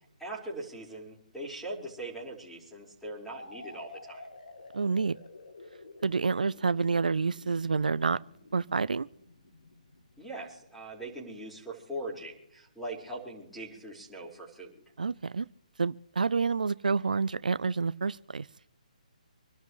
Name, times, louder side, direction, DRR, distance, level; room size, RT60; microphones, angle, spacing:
voice 1, 0.2-4.2 10.2-14.8, right 1 dB, ahead, -4 dB, 4.9 m, -41 dB
sound 1, 3.3-11.0, left 3 dB, 80° left, 3.1 m, -50 dB
voice 2, 4.7-5.2 6.0-8.2 8.5-9.1 15.0-15.5 15.8-18.5, right 4 dB, 80° right, 17 dB, 0.5 m, -28 dB
27.0 x 12.5 x 3.2 m, 0.79 s
hypercardioid pair, 150°, 4 cm